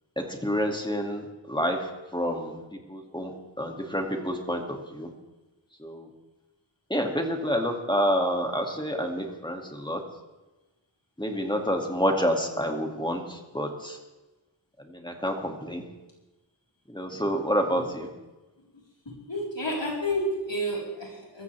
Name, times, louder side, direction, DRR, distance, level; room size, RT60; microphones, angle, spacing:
voice 1, 0.2-2.6 2.9-3.3 3.6-5.1 5.8-6.1 6.9-10.0 11.2-14.0 14.9-15.8 16.9-18.1, equal, 10° left, 2 dB, 2.6 m, -28 dB
voice 2, 19.1-21.4, equal, 90° left, -3 dB, 4.6 m, -30 dB
23.0 x 14.0 x 3.6 m, 1.1 s
wide cardioid pair, 40°, 43 cm